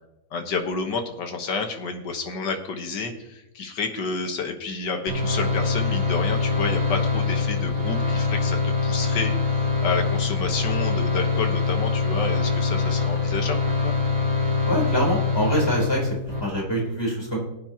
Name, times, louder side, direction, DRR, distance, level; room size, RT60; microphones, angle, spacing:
voice 1, 0.3-13.9, left 4 dB, 75° left, 5 dB, 2.0 m, -30 dB
sound 1, 5.1-16.4, left 4 dB, 20° right, 1.9 m, -24 dB
voice 2, 14.7-17.4, equal, 15° left, -3 dB, 3.9 m, -25 dB
20.0 x 8.8 x 3.0 m, 0.90 s
omnidirectional pair, 1.9 m